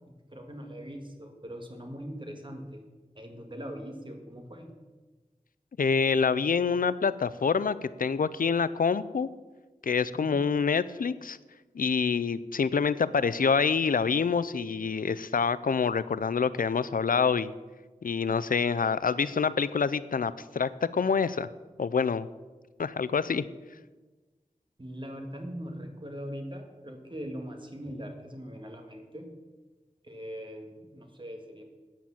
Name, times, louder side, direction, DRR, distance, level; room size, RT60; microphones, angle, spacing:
voice 1, 0.1-2.8 3.2-4.7 10.1-10.4 24.8-29.3 30.0-31.6, equal, 35° right, 3 dB, 2.0 m, -41 dB
voice 2, 5.8-9.3 9.8-11.4 11.7-17.5 18.0-21.5 21.8-22.3 22.8-23.5, left 5 dB, 85° left, 15 dB, 0.4 m, -26 dB
8.9 x 8.6 x 7.2 m, 1.2 s
wide cardioid pair, 60°, 14 cm